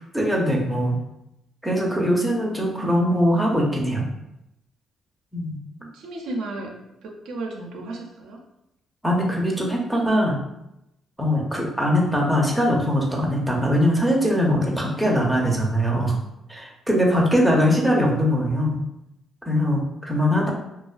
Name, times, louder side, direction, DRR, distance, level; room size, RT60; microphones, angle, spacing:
voice 1, 0.1-0.9 1.6-4.1 5.3-5.6 9.0-10.4 11.2-16.1 16.5-18.8 19.5-20.5, equal, 5° right, -2 dB, 0.5 m, -21 dB
voice 2, 5.8-6.7 7.0-8.4, right 2 dB, 85° right, 0 dB, 0.4 m, -34 dB
2.3 x 2.2 x 2.4 m, 0.86 s
cardioid pair, 90°, 0 cm